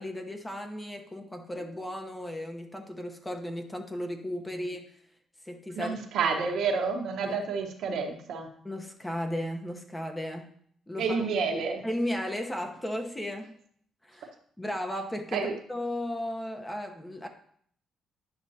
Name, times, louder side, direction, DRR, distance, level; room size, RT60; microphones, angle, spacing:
voice 1, 0.0-4.9 5.4-5.9 7.2-7.4 8.6-10.5 10.9-11.2 11.8-13.6 14.0-14.3 14.6-17.3, left 1 dB, 15° left, 4 dB, 1.0 m, -35 dB
voice 2, 5.7-8.5 11.0-11.9 15.3-15.5, right 5 dB, 75° right, 3 dB, 1.2 m, -29 dB
10.0 x 6.0 x 2.9 m, 0.63 s
cardioid pair, 90°, 0 cm